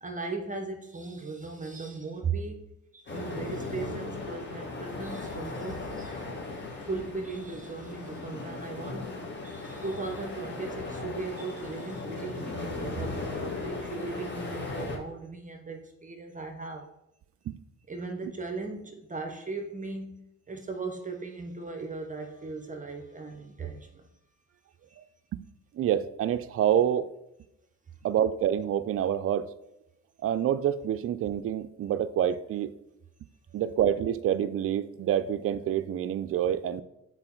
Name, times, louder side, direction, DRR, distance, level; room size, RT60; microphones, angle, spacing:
voice 1, 0.0-2.7 2.9-6.2 6.9-16.9 17.9-24.1 24.9-25.0, right 4 dB, 25° right, 5 dB, 0.8 m, -38 dB
sound 1, 3.1-15.0, left 3 dB, 35° left, 1.8 m, -37 dB
voice 2, 25.8-27.1 28.0-29.5 30.2-32.7 33.5-36.8, right 10 dB, 50° right, 12 dB, 0.4 m, -27 dB
6.7 x 4.0 x 4.4 m, 0.84 s
cardioid pair, 90°, 30 cm